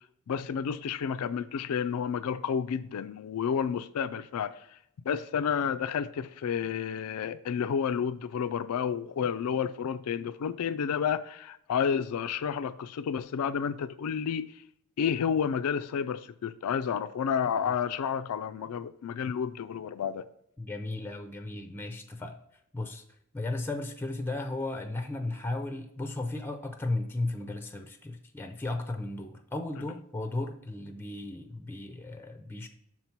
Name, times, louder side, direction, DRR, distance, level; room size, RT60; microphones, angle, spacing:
voice 1, 0.3-4.6 5.0-14.5 15.0-20.3 29.8-29.9, left 7 dB, 85° left, 13 dB, 0.4 m, -30 dB
voice 2, 20.6-22.4 22.7-23.0 23.3-32.7, left 2 dB, 10° left, 7 dB, 0.5 m, -35 dB
5.9 x 4.5 x 5.6 m, 0.75 s
head